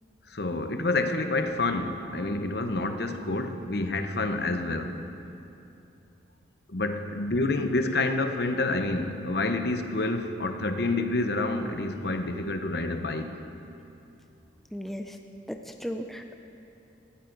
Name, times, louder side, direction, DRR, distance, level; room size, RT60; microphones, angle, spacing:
voice 1, 0.3-5.0 6.7-13.3, left 2 dB, 55° left, 7 dB, 0.8 m, -28 dB
voice 2, 14.7-15.2 15.5-16.4, equal, ahead, 4 dB, 0.5 m, -36 dB
18.5 x 14.5 x 3.9 m, 2.8 s
head